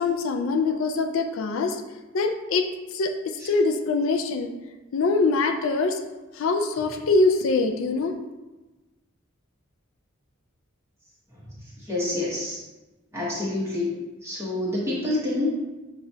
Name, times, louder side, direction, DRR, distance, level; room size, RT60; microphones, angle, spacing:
voice 1, 0.0-1.8 2.1-4.5 4.9-6.0 6.4-8.1, left 3 dB, 75° left, 5 dB, 0.4 m, -24 dB
voice 2, 11.9-12.6 13.1-13.9 14.2-15.6, left 2 dB, 15° right, -7 dB, 1.1 m, -27 dB
6.7 x 2.3 x 2.7 m, 1.1 s
head